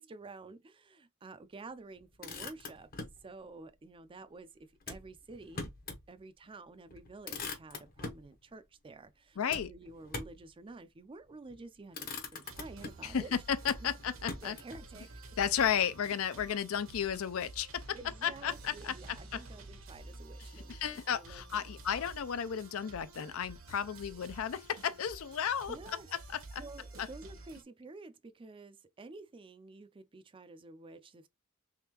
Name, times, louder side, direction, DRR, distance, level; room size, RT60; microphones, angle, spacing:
voice 1, 0.0-2.9 3.2-4.5 4.9-5.7 6.1-13.4 14.4-15.2 17.9-21.6 25.7-26.1 26.6-31.3, right 3 dB, 25° right, 0.4 m, -50 dB
Motor vehicle (road), 2.0-3.2 4.8-6.1 6.5-6.6 6.9-8.3 9.5-10.5 11.3-11.6 11.9-13.1 13.6-14.8, left 3 dB, 45° left, 0.8 m, -43 dB
voice 2, 9.4-9.7 13.0-14.6 15.4-19.4 20.7-25.8 26.3-26.6 27.0-27.1, left 8 dB, 70° left, 0.4 m, -33 dB
sound 1, 12.4-27.6, right 2 dB, 70° right, 1.0 m, -50 dB
3.6 x 3.3 x 2.9 m
head